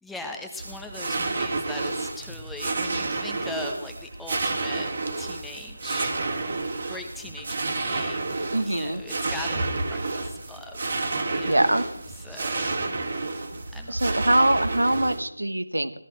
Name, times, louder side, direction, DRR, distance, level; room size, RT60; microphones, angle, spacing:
voice 1, 0.0-4.9 5.2-6.1 6.9-10.8 11.3-11.7 12.2-12.9 13.7-14.2, left 2 dB, 5° left, 3 dB, 1.1 m, -40 dB
sound 1, 0.6-15.2, right 3 dB, 45° right, 1.8 m, -30 dB
voice 2, 8.5-9.0 11.3-11.8 13.9-16.1, right 1 dB, 80° right, 12 dB, 1.2 m, -23 dB
16.5 x 13.0 x 4.6 m, 0.79 s
figure-of-eight pair, 160°, 0 cm